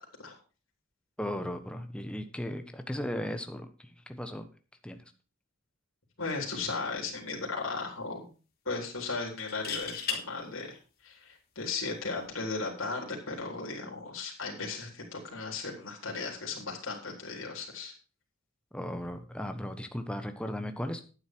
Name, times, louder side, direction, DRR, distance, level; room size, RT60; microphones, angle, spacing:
voice 1, 1.2-4.5 4.8-5.0 18.7-21.0, equal, 5° left, 6 dB, 1.2 m, -36 dB
voice 2, 6.2-8.3 8.7-17.9, left 4 dB, 90° left, -1 dB, 3.7 m, -36 dB
sound 1, 6.5-6.8 7.1-7.2 9.4-10.2 12.0-12.3, left 6 dB, 50° left, 3.2 m, -35 dB
11.5 x 9.4 x 4.6 m, 0.36 s
head